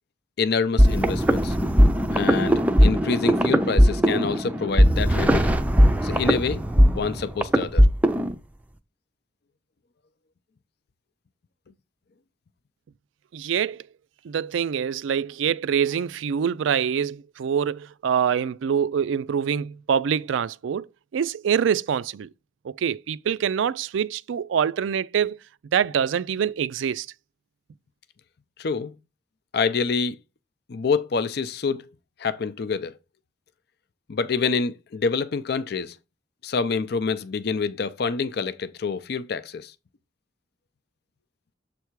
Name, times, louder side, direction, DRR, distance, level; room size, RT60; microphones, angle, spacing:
voice 1, 0.4-1.6 2.1-5.6 6.0-6.6 6.9-7.9 28.6-28.9 29.5-30.2 30.7-31.9 32.2-32.9 34.1-36.0 36.4-39.7, left 5 dB, 55° left, 0.5 m, -27 dB
sound 1, 0.8-8.3, equal, 10° right, 0.5 m, -18 dB
voice 2, 13.3-13.8 14.2-20.8 21.1-22.3 22.6-25.4 25.7-27.1, right 7 dB, 80° right, 0.3 m, -25 dB
7.3 x 3.4 x 4.6 m
head